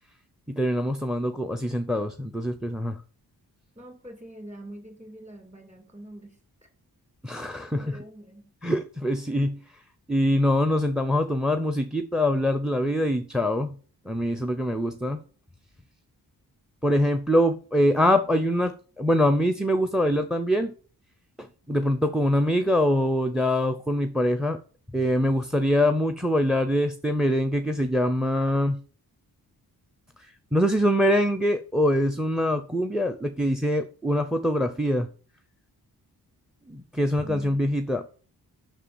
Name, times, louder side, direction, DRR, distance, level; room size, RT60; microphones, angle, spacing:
voice 1, 0.5-3.0 7.2-7.9 8.6-9.6 10.1-13.8 14.1-15.2 16.8-20.7 21.4-24.6 24.9-28.8 30.5-35.1 36.7-38.0, equal, ahead, 0.6 m, -24 dB
voice 2, 3.7-6.7 7.7-8.5 37.2-37.7, right 1 dB, 20° right, 3.0 m, -44 dB
7.1 x 5.9 x 7.0 m
wide cardioid pair, 125°, 38 cm